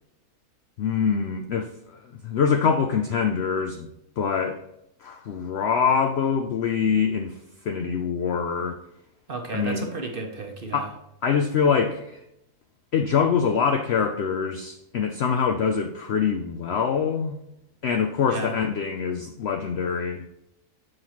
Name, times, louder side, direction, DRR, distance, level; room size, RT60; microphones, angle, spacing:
voice 1, 0.8-3.9 4.2-4.6 5.0-7.4 7.6-8.8 9.5-9.9 10.7-10.9 11.2-12.2 12.9-17.4 17.8-20.3, left 6 dB, 70° left, 6 dB, 0.6 m, -24 dB
voice 2, 9.3-10.9 18.2-18.5, right 3 dB, 45° right, 3 dB, 0.8 m, -33 dB
7.6 x 5.7 x 3.0 m, 0.82 s
omnidirectional pair, 1.6 m